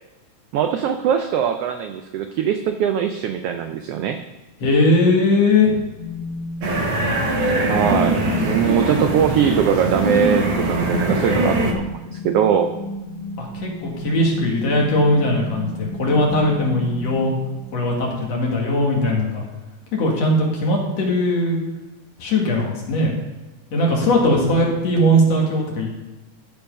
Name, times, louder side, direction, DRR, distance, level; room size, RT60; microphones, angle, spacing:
voice 1, 0.5-4.2 7.7-8.2 8.4-12.7, right 8 dB, 85° right, 7 dB, 1.3 m, -21 dB
voice 2, 4.6-5.8 13.4-17.3 17.7-19.5 19.9-21.6 22.2-23.1 23.7-26.0, left 1 dB, 60° left, -1 dB, 2.9 m, -19 dB
sound 1, 6.0-18.0, left 2 dB, 85° left, 3.6 m, -32 dB
sound 2, 6.6-11.7, right 2 dB, 55° right, 1.6 m, -21 dB
14.0 x 4.7 x 5.2 m, 1.1 s
omnidirectional pair, 3.3 m